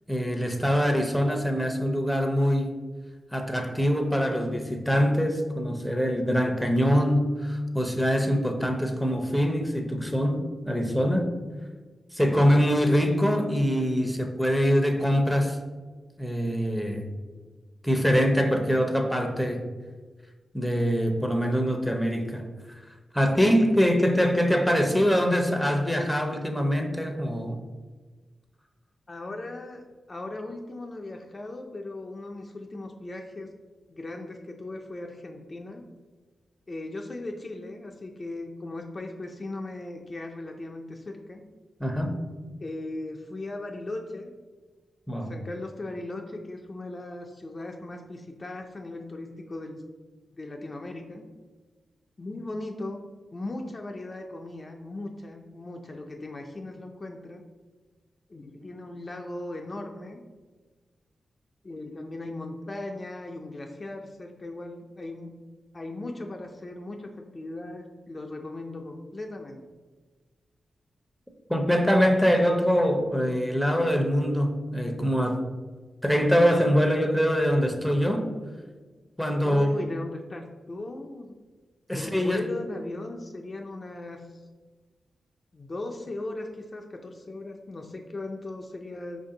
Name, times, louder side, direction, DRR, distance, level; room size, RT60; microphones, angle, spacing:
voice 1, 0.1-2.7 3.3-11.3 12.1-15.6 16.2-17.1 17.8-19.7 20.5-22.8 23.1-27.6 41.8-42.1 45.1-45.3 71.5-75.4 76.0-78.3 79.2-79.7 81.9-82.5, equal, ahead, 4 dB, 0.7 m, -24 dB
voice 2, 29.1-29.8 30.1-33.5 33.9-35.8 36.7-41.4 42.6-44.3 45.2-49.8 50.3-51.3 52.2-53.0 53.3-57.4 58.3-60.2 61.6-65.3 65.7-69.6 79.4-81.3 81.9-84.4 85.5-89.2, left 2 dB, 40° left, 2 dB, 0.5 m, -38 dB
5.0 x 2.7 x 3.7 m, 1.3 s
cardioid pair, 50°, 0 cm